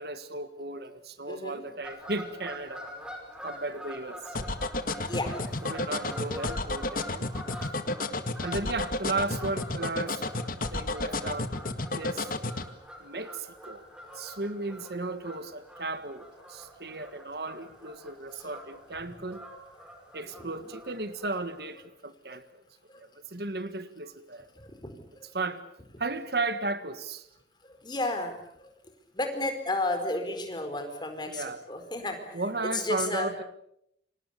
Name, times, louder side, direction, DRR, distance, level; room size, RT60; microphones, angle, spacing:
voice 1, 0.0-2.9 3.4-4.7 5.6-7.3 8.4-10.2 10.7-11.5 11.9-12.3 13.0-13.9 14.1-19.4 20.1-22.6 23.0-24.5 25.3-25.6 26.0-27.3 31.3-31.6 32.3-33.4, right 2 dB, 60° right, 1.7 m, -35 dB
voice 2, 1.3-1.6 3.4-3.5 5.0-5.5 7.0-7.1 14.1-14.2 19.8-19.9 20.2-20.7 22.3-22.4 22.9-23.0 24.5-25.3 27.6-28.7 29.1-32.4 32.7-33.3, left 2 dB, 25° left, 4.6 m, -33 dB
Fowl / Bird vocalization bird call bird song, 1.8-21.7, equal, 5° right, 5.1 m, -45 dB
sound 1, 4.3-12.7, left 2 dB, 50° left, 1.8 m, -31 dB
29.5 x 25.5 x 6.9 m
head